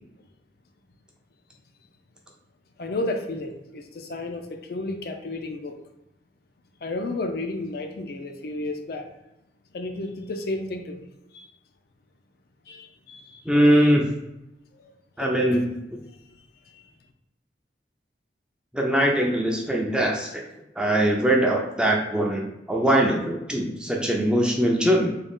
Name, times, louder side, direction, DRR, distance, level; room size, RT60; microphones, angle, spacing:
voice 1, 2.8-5.8 6.8-9.1 9.7-11.0 11.3-11.4 12.7-13.9 14.8-14.9 15.2-15.6, left 2 dB, 55° left, 5 dB, 0.4 m, -32 dB
voice 2, 13.5-14.1 15.2-15.6 18.7-20.4 20.8-22.4 22.7-25.1, right 1 dB, 5° right, -1 dB, 0.4 m, -21 dB
3.8 x 2.3 x 3.5 m, 0.91 s
head